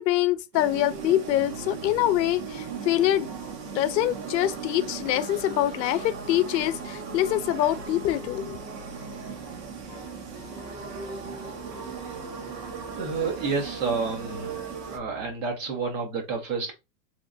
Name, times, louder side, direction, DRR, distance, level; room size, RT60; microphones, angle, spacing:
voice 1, 0.0-3.3 3.7-8.6, left 13 dB, 85° left, 0.6 m, -25 dB
sound 1, 0.5-15.0, right 6 dB, 75° right, 0.9 m, -37 dB
sound 2, 1.2-15.3, left 3 dB, 20° left, 0.8 m, -47 dB
voice 2, 13.0-14.6 14.9-16.7, right 4 dB, 55° right, 1.2 m, -30 dB
3.3 x 2.1 x 2.5 m
supercardioid pair, 180°, 50 cm